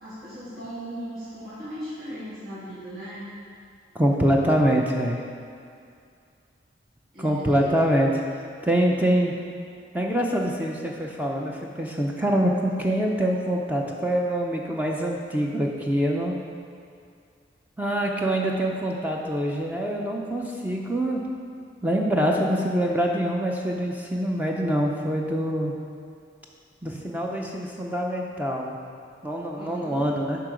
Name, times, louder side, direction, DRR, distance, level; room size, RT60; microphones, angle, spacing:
voice 1, 0.0-3.2 7.1-7.9 29.5-30.0, right 1 dB, 50° right, -11 dB, 1.7 m, -38 dB
voice 2, 3.9-5.2 7.2-8.2 8.6-9.3 9.9-16.4 17.8-21.2 21.8-25.7 26.8-28.8 29.2-30.4, equal, 10° right, -1 dB, 0.5 m, -25 dB
11.5 x 3.8 x 5.0 m, 2.4 s
head